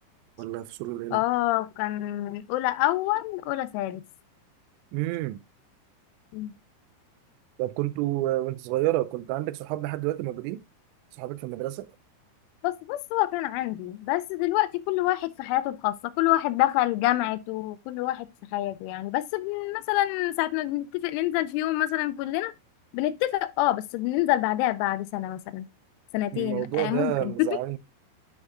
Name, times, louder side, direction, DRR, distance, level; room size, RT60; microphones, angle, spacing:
voice 1, 0.4-1.2 4.9-5.4 7.6-10.6 11.2-11.9 26.3-27.8, right 16 dB, 85° right, 2.7 m, -29 dB
voice 2, 1.1-4.0 6.3-6.5 12.6-22.5 22.9-25.7 26.1-27.6, left 16 dB, 85° left, 3.0 m, -27 dB
9.7 x 5.3 x 2.4 m
omnidirectional pair, 5.5 m